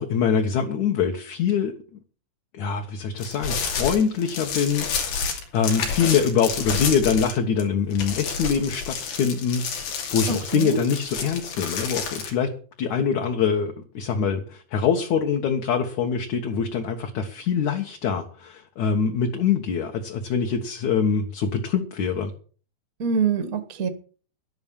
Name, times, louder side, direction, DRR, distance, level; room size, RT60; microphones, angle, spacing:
voice 1, 0.0-1.7 2.5-12.5 12.8-22.3, left 6 dB, 60° left, 3 dB, 2.3 m, -24 dB
sound 1, 3.2-7.6 7.9-12.3, left 6 dB, 80° left, 4.9 m, -29 dB
voice 2, 10.3-10.8 23.0-23.9, right 6 dB, 55° right, 9 dB, 0.9 m, -25 dB
11.5 x 11.0 x 7.2 m, 0.41 s
omnidirectional pair, 4.6 m